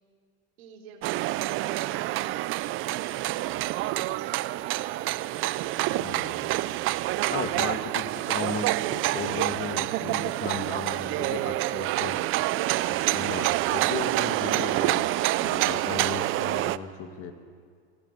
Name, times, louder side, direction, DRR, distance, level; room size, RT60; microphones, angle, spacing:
voice 1, 0.6-2.4 3.0-5.1, right 6 dB, 70° right, 2 dB, 3.3 m, -49 dB
sound 1, 1.0-16.8, right 17 dB, 40° right, 0.6 m, -27 dB
voice 2, 5.9-6.6 7.3-12.2 12.8-15.1 15.4-17.3, left 7 dB, 40° left, 6 dB, 2.2 m, -36 dB
24.5 x 15.0 x 8.4 m, 2.1 s
hypercardioid pair, 100°, 33 cm